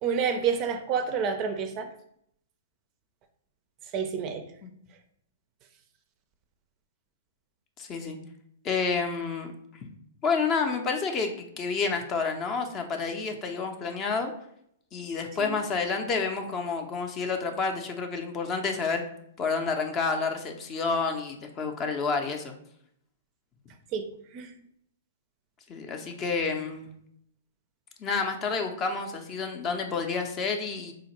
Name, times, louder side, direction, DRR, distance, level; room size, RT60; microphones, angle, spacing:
voice 1, 0.0-1.9 3.9-4.5 15.4-15.6 23.9-24.5, right 6 dB, 35° right, 7 dB, 0.4 m, -29 dB
voice 2, 7.8-8.2 8.6-9.5 9.8-9.9 10.2-14.3 14.9-19.0 19.4-22.5 25.7-26.9 28.0-30.9, left 4 dB, 25° left, 5 dB, 0.5 m, -29 dB
3.9 x 2.4 x 2.9 m, 0.70 s
hypercardioid pair, 125°, 0 cm